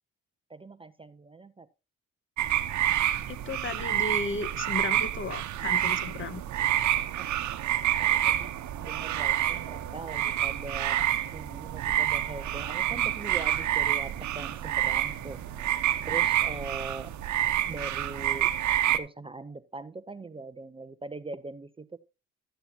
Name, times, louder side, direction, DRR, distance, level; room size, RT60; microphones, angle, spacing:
voice 1, 0.5-1.7 7.2-7.4 8.0-11.0 11.3-15.4 16.0-17.1 17.7-18.5 18.9-22.0, right 3 dB, 20° right, 12 dB, 0.6 m, -41 dB
sound 1, 2.4-19.0, right 12 dB, 70° right, 0.9 m, -28 dB
voice 2, 3.3-6.4, left 3 dB, 40° left, 13 dB, 1.3 m, -35 dB
sound 2, 12.1-17.2, right 1 dB, ahead, 6.0 m, -54 dB
12.5 x 8.9 x 2.8 m, 0.28 s
cardioid pair, 90°, 30 cm